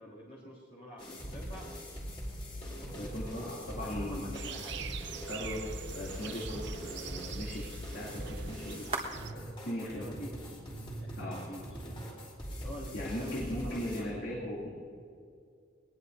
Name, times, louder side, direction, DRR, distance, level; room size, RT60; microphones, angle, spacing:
voice 1, 0.0-1.7 2.5-4.9 9.8-10.6 11.0-12.4 12.6-14.2, equal, 45° left, -8 dB, 2.8 m, -48 dB
sound 1, 1.0-14.0, equal, 25° left, 3.5 m, -42 dB
sound 2, 2.2-12.3, right 3 dB, 30° right, 1.5 m, -49 dB
voice 2, 3.0-4.2 5.3-8.9 9.3-10.1 11.2-11.4 12.9-14.7, left 1 dB, 70° left, -5 dB, 2.7 m, -38 dB
sound 3, 4.3-9.3, right 8 dB, 65° right, 0.7 m, -44 dB
22.0 x 19.0 x 2.7 m, 2.3 s
head